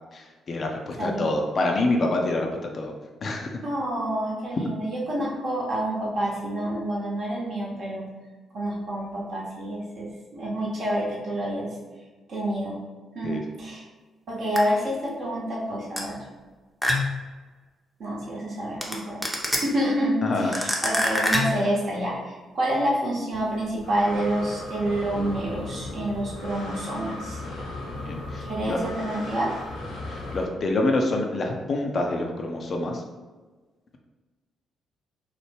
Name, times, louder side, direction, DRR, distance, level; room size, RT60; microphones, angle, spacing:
voice 1, 0.1-2.9 3.2-3.6 13.2-13.4 20.2-20.5 28.1-28.8 30.1-33.0, left 2 dB, 40° left, 2 dB, 0.4 m, -26 dB
voice 2, 1.0-1.3 3.6-8.1 8.5-11.7 12.3-12.8 13.1-13.8 14.3-16.2 18.0-27.4 28.4-29.5, right 1 dB, 50° right, -4 dB, 0.8 m, -28 dB
sound 1, 14.6-14.7 16.0-16.1 16.8-17.2 18.8-18.9 19.2-19.6 20.5-21.6, left 1 dB, ahead, 0.6 m, -24 dB
Breathing, 23.3-30.4, left 2 dB, 70° left, 0.8 m, -37 dB
3.1 x 2.1 x 3.3 m, 1.3 s
figure-of-eight pair, 40°, 0 cm